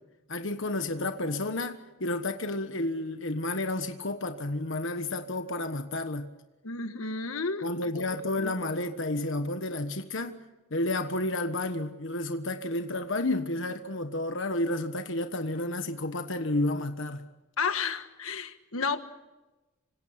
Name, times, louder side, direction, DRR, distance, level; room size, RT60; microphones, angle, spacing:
voice 1, 0.3-6.3 7.6-10.4 10.7-17.2, left 2 dB, 65° left, 1.4 m, -31 dB
voice 2, 6.6-7.7 7.9-8.0 8.4-8.5 17.6-19.0, left 4 dB, 85° left, 1.6 m, -31 dB
26.5 x 25.5 x 5.9 m
head